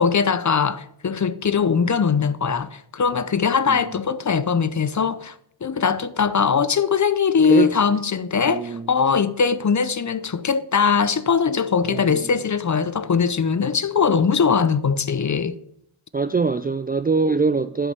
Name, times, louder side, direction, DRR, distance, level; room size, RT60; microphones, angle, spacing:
voice 1, 0.0-5.3 5.6-15.6, left 6 dB, 35° left, 0.7 m, -21 dB
voice 2, 8.5-8.9 11.9-12.3 16.1-17.9, right 4 dB, 20° right, 0.3 m, -23 dB
11.0 x 5.3 x 6.8 m
cardioid pair, 65°, 49 cm